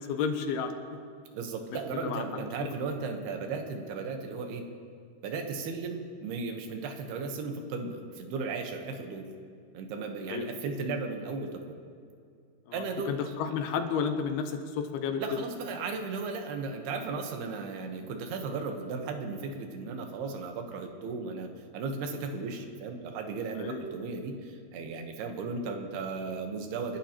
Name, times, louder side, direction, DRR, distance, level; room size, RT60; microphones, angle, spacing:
voice 1, 0.1-1.0 1.7-2.4 10.3-10.5 12.7-15.2 23.6-23.9, left 6 dB, 80° left, 6 dB, 2.9 m, -32 dB
voice 2, 1.3-4.7 5.2-9.3 9.7-11.8 12.7-13.1 15.2-27.0, right 4 dB, 80° right, 4 dB, 3.2 m, -35 dB
29.0 x 11.5 x 3.0 m, 2.3 s
omnidirectional pair, 4.6 m